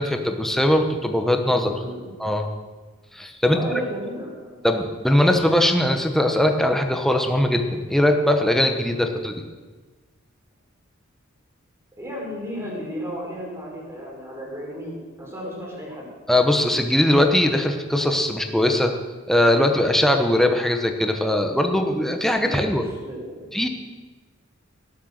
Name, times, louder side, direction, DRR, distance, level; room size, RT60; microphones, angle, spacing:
voice 1, 0.0-1.7 2.2-2.5 3.1-3.7 4.6-9.4 16.3-19.0 19.3-22.9 23.5-23.7, left 1 dB, ahead, 5 dB, 1.1 m, -20 dB
voice 2, 1.5-2.1 3.5-4.7 8.9-9.0 12.0-16.1 22.4-23.5, equal, 15° right, -3 dB, 4.8 m, -34 dB
18.0 x 8.1 x 6.6 m, 1.4 s
head